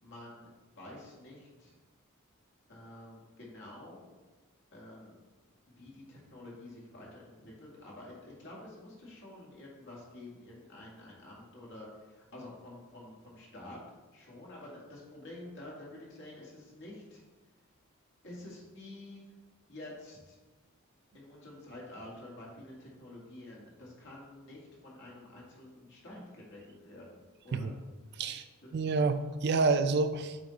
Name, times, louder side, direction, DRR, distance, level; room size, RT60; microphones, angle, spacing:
voice 1, 0.0-0.5 0.7-1.7 2.7-4.1 4.7-5.2 5.8-13.8 14.1-17.2 18.2-19.2 19.7-20.4 21.1-27.8 28.6-28.7, left 1 dB, 60° left, -3 dB, 1.9 m, -49 dB
voice 2, 28.7-30.4, right 4 dB, 50° right, 10 dB, 0.4 m, -28 dB
7.9 x 3.6 x 3.9 m, 1.2 s
head